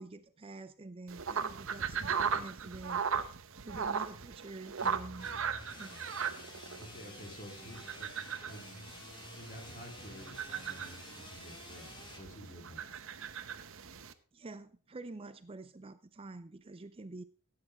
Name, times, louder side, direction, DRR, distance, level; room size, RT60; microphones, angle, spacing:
voice 1, 0.0-3.4 3.6-5.3 5.8-6.0 14.3-17.2, right 2 dB, 25° right, 12 dB, 0.5 m, -47 dB
sound 1, 1.1-14.1, right 6 dB, 60° right, 0.9 m, -38 dB
sound 2, 4.8-12.2, left 2 dB, 20° left, 1.9 m, -51 dB
voice 2, 6.7-8.2 8.5-9.0 9.4-11.9 12.1-12.9, equal, 40° left, 2 dB, 3.2 m, -50 dB
15.5 x 8.7 x 3.6 m, 0.41 s
head